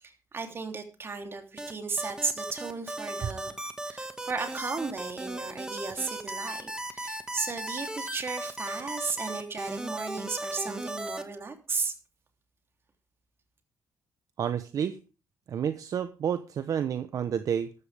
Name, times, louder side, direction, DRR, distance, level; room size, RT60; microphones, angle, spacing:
voice 1, 0.0-3.5 3.8-11.9, right 4 dB, 35° right, 5 dB, 3.2 m, -35 dB
sound 1, 1.6-11.2, right 1 dB, 10° right, 1.8 m, -36 dB
voice 2, 14.4-15.0 15.5-17.7, right 8 dB, 60° right, 10 dB, 1.0 m, -30 dB
14.0 x 12.5 x 3.5 m, 0.33 s
cardioid pair, 110°, 7 cm